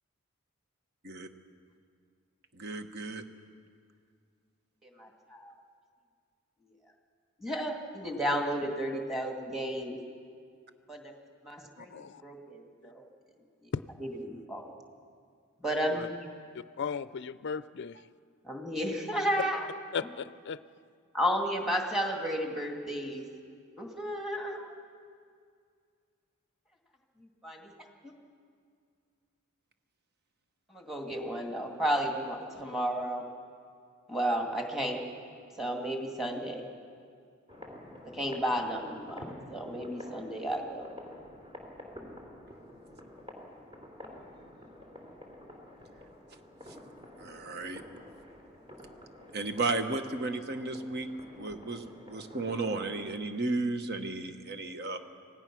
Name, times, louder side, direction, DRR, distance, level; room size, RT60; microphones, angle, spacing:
voice 1, 2.5-3.2 47.2-47.8 49.3-51.1 51.3-55.0, right 3 dB, 50° right, 7 dB, 1.2 m, -34 dB
voice 2, 4.8-5.5 7.4-10.0 10.9-11.0 11.4-12.0 12.2-13.0 14.0-14.7 15.6-16.3 18.4-19.7 21.1-23.2 23.8-24.7 27.4-27.7 30.7-33.3 34.1-35.0 35.6-36.7 38.1-39.2 39.5-40.9, equal, ahead, 2 dB, 2.2 m, -32 dB
voice 3, 11.8-12.2 12.8-12.9 15.8-16.1 16.5-18.0 19.9-20.6, left 6 dB, 55° left, 16 dB, 0.4 m, -37 dB
sound 1, 37.5-53.1, left 1 dB, 25° right, 3.1 m, -49 dB
26.0 x 17.0 x 6.1 m, 2.2 s
head